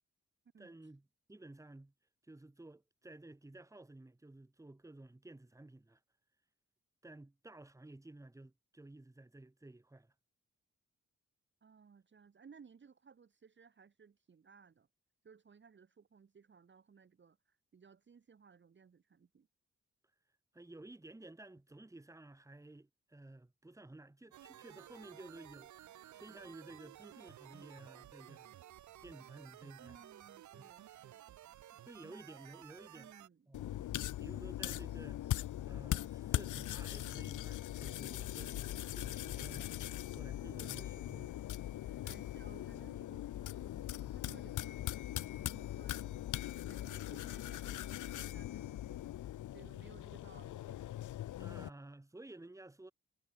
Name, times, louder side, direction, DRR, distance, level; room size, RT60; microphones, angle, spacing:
voice 1, 0.6-1.9 2.2-6.0 7.0-10.1 20.5-28.6 29.0-30.0 30.6-30.7 31.7-33.1 33.5-39.7 40.1-41.3 41.8-42.0 51.4-52.9, right 2 dB, 10° right, 1.6 m, -54 dB
voice 2, 11.6-14.9 15.2-19.5 29.8-31.4 32.9-33.5 40.6-50.8 51.5-51.7, right 6 dB, 40° right, 1.2 m, -61 dB
sound 1, 24.3-33.3, right 13 dB, 75° right, 0.5 m, -55 dB
sound 2, 33.5-51.7, left 13 dB, 90° left, 0.5 m, -41 dB
wide cardioid pair, 160°, 29 cm